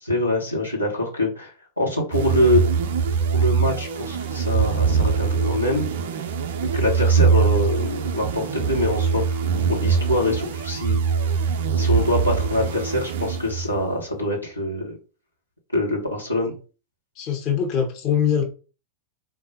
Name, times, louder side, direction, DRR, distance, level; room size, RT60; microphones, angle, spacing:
voice 1, 0.0-1.5 1.8-2.6 3.3-5.9 6.7-9.4 9.7-11.0 11.8-15.0 15.7-16.5, left 1 dB, 85° left, -3 dB, 1.4 m, -24 dB
sound 1, 2.1-13.9, right 6 dB, 55° right, 0.5 m, -22 dB
voice 2, 17.2-18.4, left 8 dB, 40° left, 3 dB, 1.0 m, -22 dB
3.8 x 2.6 x 4.1 m, 0.35 s
figure-of-eight pair, 90°, 0 cm